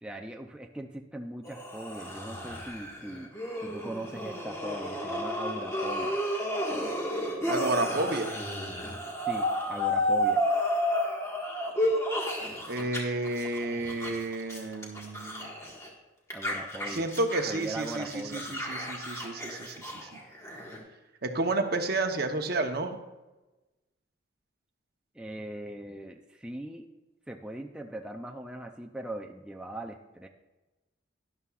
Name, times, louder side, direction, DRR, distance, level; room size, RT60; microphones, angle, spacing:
voice 1, 0.0-3.3 3.6-6.2 9.2-10.4 16.3-17.1 17.5-18.6 25.1-26.9 27.3-30.3, right 1 dB, 5° right, 2 dB, 0.4 m, -40 dB
sound 1, 1.5-13.0 13.2-15.9 16.3-20.8, equal, 15° left, 1.6 m, -32 dB
voice 2, 7.5-8.4 12.7-15.5 16.9-20.1 21.2-23.0, right 2 dB, 55° right, 6 dB, 0.9 m, -31 dB
12.5 x 11.0 x 2.4 m, 1.1 s
head